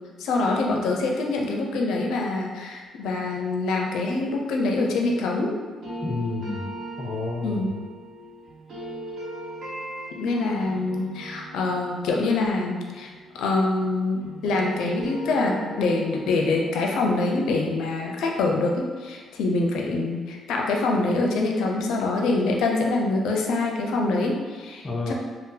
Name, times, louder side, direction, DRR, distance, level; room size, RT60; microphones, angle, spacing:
voice 1, 0.2-5.5 7.4-7.7 10.1-25.1, left 3 dB, 85° left, 0 dB, 0.4 m, -25 dB
sound 1, 5.8-13.9 14.2-19.2, right 1 dB, 65° right, 0.9 m, -39 dB
voice 2, 6.0-6.7 7.0-7.8 24.8-25.1, left 3 dB, 30° left, 0 dB, 0.4 m, -30 dB
2.7 x 2.0 x 3.7 m, 1.5 s
cardioid pair, 90°, 0 cm